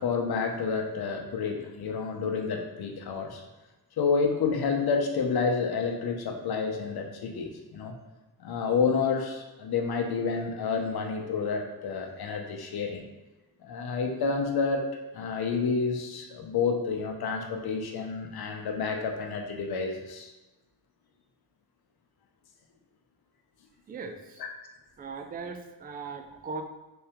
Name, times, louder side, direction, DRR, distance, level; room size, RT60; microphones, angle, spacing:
voice 1, 0.0-3.4 4.0-7.9 8.4-13.0 13.6-14.9 15.1-20.3, left 5 dB, 65° left, 3 dB, 0.7 m, -29 dB
voice 2, 23.9-24.4 25.0-26.6, right 4 dB, 25° right, 6 dB, 0.3 m, -39 dB
3.5 x 2.8 x 3.4 m, 1.1 s
cardioid pair, 85°, 40 cm